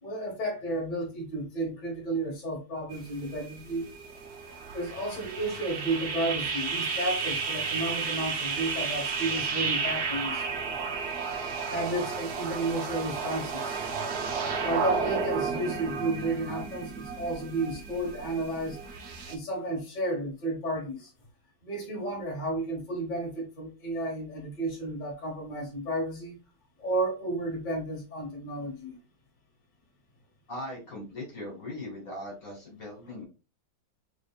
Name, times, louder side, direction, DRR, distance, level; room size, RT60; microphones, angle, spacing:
voice 1, 0.0-3.9 4.7-10.4 11.7-13.8 14.6-18.8 19.3-21.1 21.6-26.4 26.8-29.0, right 1 dB, 25° left, 1.3 m, -32 dB
sound 1, 2.9-19.3, right 5 dB, 75° right, 0.6 m, -33 dB
voice 2, 30.5-33.2, left 1 dB, 45° left, 2.1 m, -39 dB
5.0 x 3.5 x 2.4 m
omnidirectional pair, 2.1 m